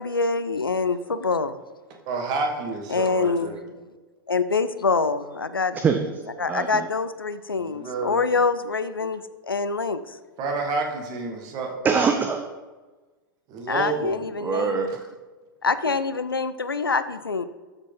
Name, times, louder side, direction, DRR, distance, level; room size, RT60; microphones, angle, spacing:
voice 1, 0.0-1.6 2.9-3.5 4.3-5.8 6.4-10.2 13.7-14.9 15.6-17.4, left 4 dB, 80° left, 12 dB, 0.5 m, -25 dB
voice 2, 2.0-3.6 7.6-8.2 10.4-11.8 13.5-14.2, right 3 dB, 35° right, 3 dB, 1.5 m, -29 dB
voice 3, 5.7-6.9 11.8-12.4 14.4-15.0, right 5 dB, 15° right, 6 dB, 0.5 m, -24 dB
12.5 x 5.0 x 3.7 m, 1.3 s
figure-of-eight pair, 95°, 12 cm